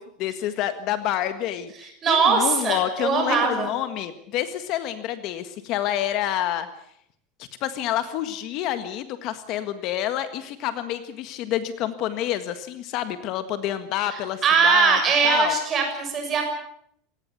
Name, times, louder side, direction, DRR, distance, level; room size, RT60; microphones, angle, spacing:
voice 1, 0.0-6.7 7.6-15.0 15.2-15.5, left 12 dB, 40° left, 10 dB, 1.6 m, -28 dB
voice 2, 2.0-3.7 14.4-16.5, right 5 dB, 20° right, 4 dB, 6.7 m, -21 dB
25.5 x 19.0 x 8.3 m, 0.69 s
supercardioid pair, 175°, 0 cm